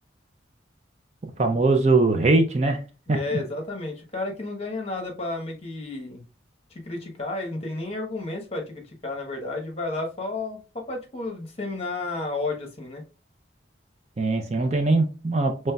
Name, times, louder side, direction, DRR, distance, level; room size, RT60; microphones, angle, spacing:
voice 1, 1.4-2.8 14.2-15.7, right 3 dB, 35° right, 5 dB, 0.5 m, -21 dB
voice 2, 3.1-6.2 6.7-13.0, left 2 dB, 30° left, 1 dB, 1.0 m, -32 dB
5.3 x 3.2 x 2.3 m, 0.33 s
head